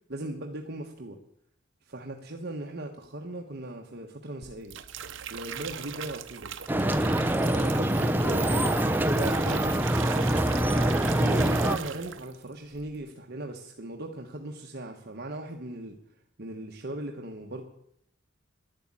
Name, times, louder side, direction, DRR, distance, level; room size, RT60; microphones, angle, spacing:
voice 1, 0.1-1.2 1.9-4.8 5.3-6.5 7.4-9.8 10.5-16.0 16.4-17.6, right 1 dB, 55° right, 2 dB, 1.3 m, -38 dB
sound 1, 4.4-12.4 12.7-13.1, right 7 dB, 75° right, 0.9 m, -39 dB
sound 2, 6.7-11.8, right 1 dB, 10° right, 0.7 m, -25 dB
11.5 x 11.0 x 8.7 m, 0.73 s
head